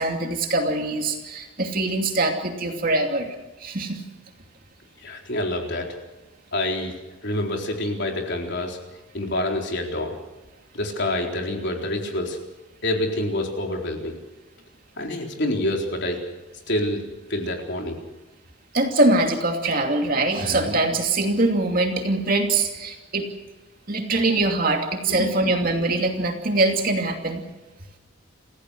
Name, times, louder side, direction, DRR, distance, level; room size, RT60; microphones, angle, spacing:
voice 1, 0.0-3.3 3.6-4.0 18.7-23.3 23.9-27.4, right 2 dB, 40° right, 3 dB, 2.7 m, -23 dB
voice 2, 5.0-5.9 6.5-7.0 7.2-8.8 9.1-10.2 10.7-12.4 12.8-14.2 15.0-16.2 16.7-17.0 17.3-18.0 25.1-25.9, left 1 dB, 55° left, 1 dB, 4.1 m, -27 dB
28.5 x 16.0 x 6.4 m, 1.1 s
head